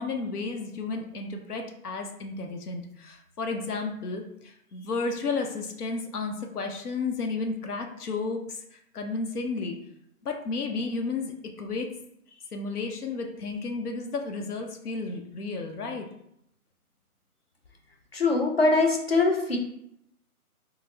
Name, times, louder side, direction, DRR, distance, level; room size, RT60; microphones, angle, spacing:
voice 1, 0.0-9.8 10.2-11.9 12.3-16.1, left 4 dB, 90° left, 3 dB, 0.8 m, -32 dB
voice 2, 18.1-19.6, left 3 dB, 45° left, 1 dB, 0.6 m, -22 dB
3.8 x 2.0 x 2.7 m, 0.76 s
hypercardioid pair, 170°, 44 cm